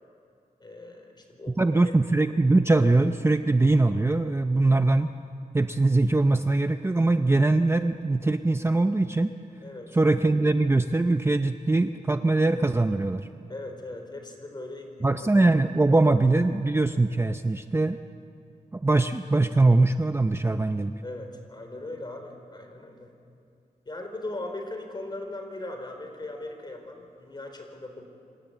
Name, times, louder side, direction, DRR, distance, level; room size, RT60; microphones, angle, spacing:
voice 1, 0.6-1.9 9.6-10.0 13.5-15.4 21.0-23.1 23.9-28.1, left 2 dB, 30° left, 4 dB, 4.3 m, -39 dB
voice 2, 1.6-5.1 5.5-9.3 9.9-13.3 15.0-18.0 18.7-20.9, right 2 dB, 15° right, 8 dB, 0.6 m, -22 dB
27.5 x 26.0 x 8.0 m, 2.5 s
wide cardioid pair, 155°, 15 cm